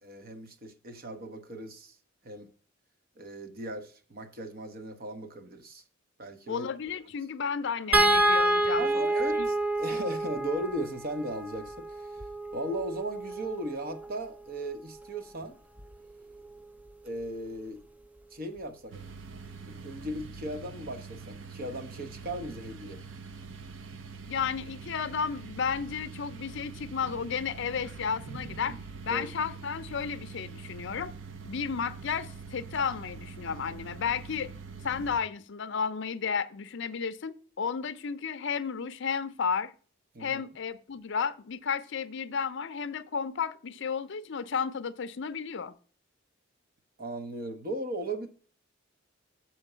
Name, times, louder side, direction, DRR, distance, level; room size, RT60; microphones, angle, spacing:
voice 1, 0.0-2.0 2.2-2.5 3.2-5.8 6.2-6.7 8.8-12.2 12.5-15.6 17.0-17.8 18.3-18.9 19.6-23.0 28.6-28.8 29.1-29.3 40.1-40.4 47.0-48.3, right 1 dB, 50° right, 0.9 m, -37 dB
voice 2, 6.5-9.1 9.4-9.5 24.3-28.8 29.0-31.1 31.4-34.5 34.8-39.7 40.2-45.8, left 6 dB, 65° left, 0.5 m, -33 dB
sound 1, 7.9-14.2 15.8-15.9 16.3-16.5, right 1 dB, 10° right, 0.3 m, -28 dB
sound 2, 18.9-35.2, right 4 dB, 70° right, 0.6 m, -44 dB
7.1 x 4.4 x 6.6 m
head